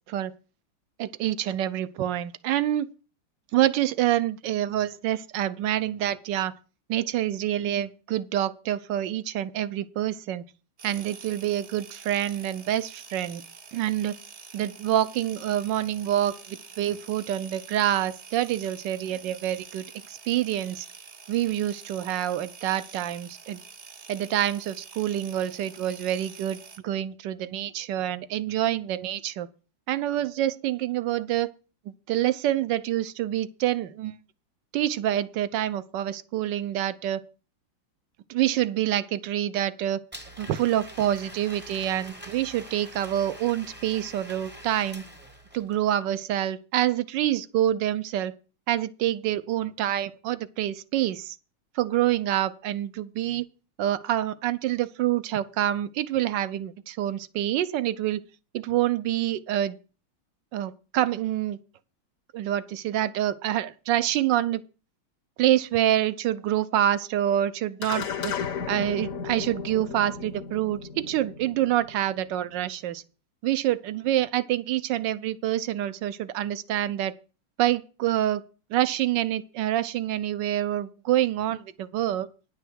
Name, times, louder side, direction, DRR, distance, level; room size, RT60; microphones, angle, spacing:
voice 1, 1.0-2.9 3.5-6.5 6.9-10.4 10.8-13.4 13.7-14.2 14.5-20.9 21.3-23.6 24.1-26.6 26.8-29.5 29.9-31.5 32.1-34.1 34.7-37.2 38.3-40.0 40.4-45.0 45.5-48.3 48.7-51.4 51.7-53.5 53.8-58.2 58.5-59.8 60.5-61.6 62.3-64.6 65.4-68.3 68.7-73.0 73.4-77.1 77.6-78.4 78.7-82.3, right 12 dB, 70° right, 1.2 m, -27 dB
sound 1, 10.8-26.8, right 5 dB, 50° right, 0.8 m, -47 dB
Domestic sounds home sounds, 40.1-45.8, equal, 10° right, 0.7 m, -45 dB
sound 2, 67.8-72.4, left 6 dB, 55° left, 1.0 m, -35 dB
10.0 x 5.7 x 7.9 m
omnidirectional pair, 2.3 m